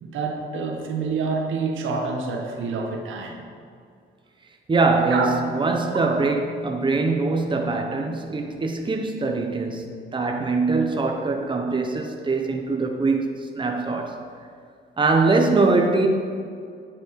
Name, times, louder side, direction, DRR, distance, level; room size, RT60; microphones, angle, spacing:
voice 1, 0.0-3.4 5.1-5.3 6.0-6.2, right 4 dB, 80° right, 1.5 m, -27 dB
voice 2, 4.7-14.2 15.0-16.1, right 3 dB, 25° right, 1.1 m, -22 dB
10.5 x 7.6 x 4.8 m
cardioid pair, 90°, 20 cm